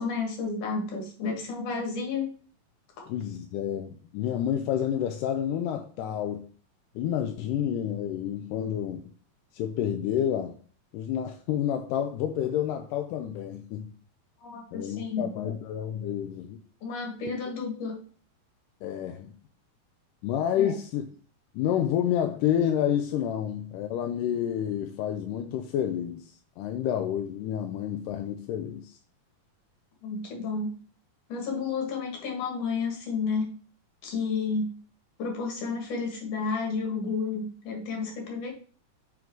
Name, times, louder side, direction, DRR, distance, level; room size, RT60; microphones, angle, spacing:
voice 1, 0.0-2.3 3.0-3.1 14.4-15.6 16.8-18.0 20.6-20.7 30.0-30.7 31.3-33.5 34.0-34.7 35.2-38.5, left 4 dB, 60° left, 3.0 m, -31 dB
voice 2, 3.1-6.5 7.0-9.0 9.5-10.6 10.9-13.9 14.7-16.6 18.8-19.3 20.2-21.1 21.5-29.0, left 10 dB, 80° left, 2.0 m, -29 dB
7.5 x 3.9 x 4.5 m
omnidirectional pair, 4.1 m